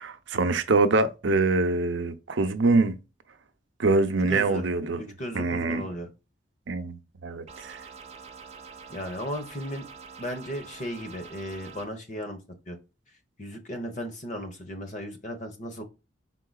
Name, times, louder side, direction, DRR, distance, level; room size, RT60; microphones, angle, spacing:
voice 1, 0.0-3.0 3.8-5.0 5.3-5.8 6.7-7.8, right 3 dB, 75° right, 0.6 m, -24 dB
voice 2, 4.3-4.6 5.2-6.1 8.9-9.8 10.2-12.4 12.7-12.8 13.4-15.8, equal, 40° left, 1.0 m, -35 dB
sound 1, 7.5-11.9, right 5 dB, 35° right, 0.7 m, -46 dB
4.7 x 3.8 x 2.3 m
head